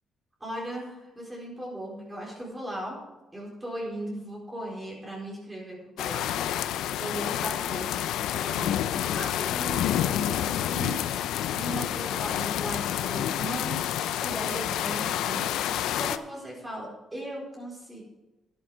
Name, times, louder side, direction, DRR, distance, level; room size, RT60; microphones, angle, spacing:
voice 1, 0.4-3.0 3.3-6.6 7.0-15.5 15.8-18.0, right 1 dB, 20° right, -3 dB, 4.3 m, -38 dB
sound 1, 6.0-16.2, left 11 dB, 85° left, 0.5 m, -29 dB
11.0 x 10.5 x 5.1 m, 1.1 s
cardioid pair, 90°, 0 cm